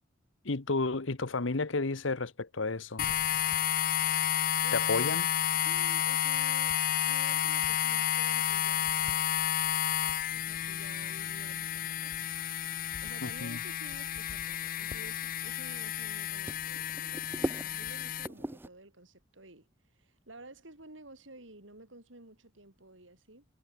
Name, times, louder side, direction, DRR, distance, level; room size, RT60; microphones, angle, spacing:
voice 1, 0.4-3.1 4.7-5.3 13.2-13.6, left 3 dB, 90° left, 1.2 m, -31 dB
sound 1, 3.0-18.3, left 11 dB, 50° left, 0.5 m, -31 dB
voice 2, 5.5-9.3 10.3-12.3 12.6-12.7 13.0-23.5, right 2 dB, 85° right, 5.4 m, -52 dB
sound 2, 11.6-18.7, right 1 dB, 10° right, 0.5 m, -43 dB
head